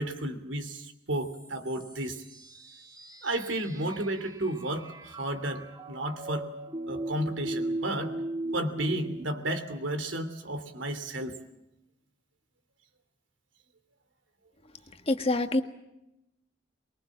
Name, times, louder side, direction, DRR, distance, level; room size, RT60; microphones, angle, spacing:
voice 1, 0.0-2.2 3.2-6.5 6.9-8.1 8.5-11.4, right 1 dB, 75° right, 9 dB, 3.0 m, -32 dB
sound 1, 1.1-9.2, right 2 dB, 20° right, 2.4 m, -38 dB
voice 2, 15.1-15.6, left 2 dB, 30° left, 7 dB, 1.7 m, -25 dB
24.0 x 23.0 x 7.5 m, 0.87 s
head